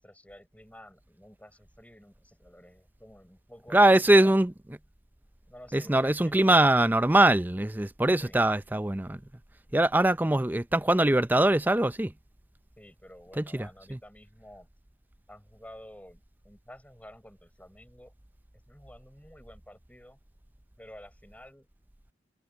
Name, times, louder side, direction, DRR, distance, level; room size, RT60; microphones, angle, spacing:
voice 1, 0.0-4.3 5.5-6.6 8.2-8.4 12.8-14.7 15.3-18.1 18.7-20.2 20.8-21.7, equal, 10° left, 6.2 m, -51 dB
voice 2, 3.7-4.5 5.7-9.2 9.7-12.1 13.4-14.0, right 1 dB, 10° right, 0.5 m, -22 dB
head